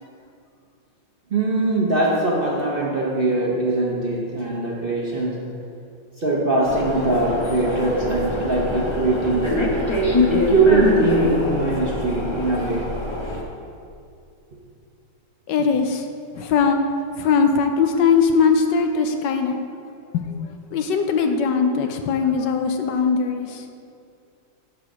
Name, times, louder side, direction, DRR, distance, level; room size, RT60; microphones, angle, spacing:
voice 1, 1.3-5.6 6.2-9.6 10.3-13.0, right 2 dB, 40° right, -3 dB, 0.9 m, -22 dB
sound 1, 6.7-13.4, left 1 dB, 25° left, 0.6 m, -24 dB
voice 2, 15.5-16.1 16.3-16.8 17.2-19.6 20.1-20.4 20.7-23.6, left 5 dB, 75° left, 6 dB, 1.3 m, -20 dB
10.5 x 4.9 x 6.1 m, 2.4 s
omnidirectional pair, 2.0 m